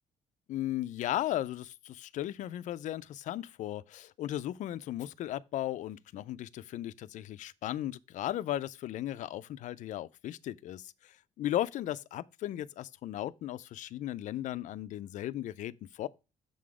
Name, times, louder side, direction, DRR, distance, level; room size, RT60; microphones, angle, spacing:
voice 1, 0.5-16.1, left 13 dB, 60° left, 0.4 m, -36 dB
6.7 x 3.8 x 4.8 m
cardioid pair, 155°, 14 cm